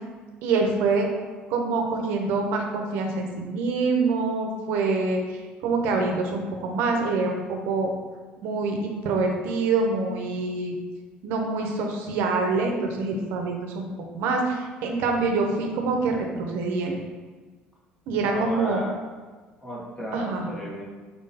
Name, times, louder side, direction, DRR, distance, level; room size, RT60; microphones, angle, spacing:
voice 1, 0.4-1.1 1.5-7.9 8.4-10.8 11.2-13.9 14.1-17.0 18.1-18.8 20.1-20.5, right 3 dB, 80° right, 2 dB, 0.6 m, -25 dB
voice 2, 18.3-19.0 19.6-20.8, equal, 15° left, -4 dB, 1.2 m, -33 dB
4.4 x 3.6 x 2.8 m, 1.4 s
cardioid pair, 105°, 4 cm